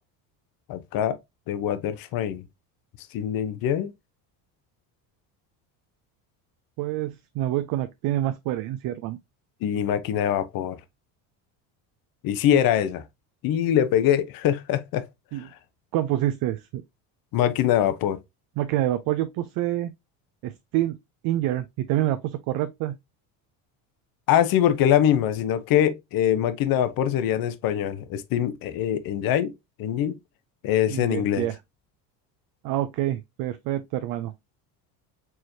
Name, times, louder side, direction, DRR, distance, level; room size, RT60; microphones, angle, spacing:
voice 1, 0.7-1.2 1.5-2.4 3.1-3.9 9.6-10.8 12.2-13.0 13.4-15.1 15.4-15.5 17.3-18.2 24.3-29.5 29.8-30.2 30.6-31.5, left 10 dB, 55° left, 0.7 m, -23 dB
voice 2, 6.8-9.2 15.3-15.5 15.9-16.8 18.6-19.9 20.4-21.0 21.2-23.0 30.9-31.6 32.6-34.3, right 13 dB, 55° right, 0.5 m, -27 dB
4.6 x 3.1 x 2.7 m
supercardioid pair, 110°, 42 cm